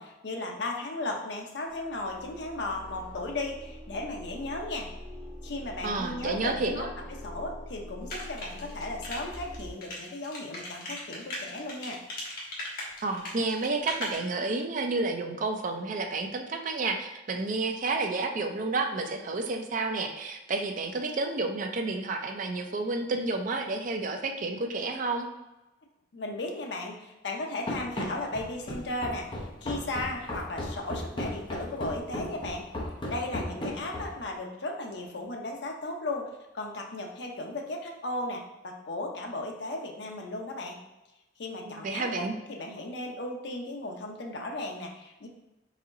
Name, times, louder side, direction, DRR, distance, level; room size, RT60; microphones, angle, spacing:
voice 1, 0.0-4.9 5.4-6.9 7.2-12.0 26.1-32.7 33.1-40.8 41.4-45.3, left 2 dB, 75° left, 1 dB, 0.7 m, -36 dB
sound 1, 1.7-9.7, equal, 15° right, 1.0 m, -44 dB
voice 2, 5.8-6.9 13.0-25.3 41.6-42.4, right 3 dB, 45° right, 4 dB, 0.5 m, -30 dB
sound 2, 8.1-14.2, left 1 dB, 55° left, 1.1 m, -38 dB
Run, 27.7-34.3, left 1 dB, 30° left, 0.7 m, -35 dB
4.1 x 3.8 x 2.6 m, 0.97 s
head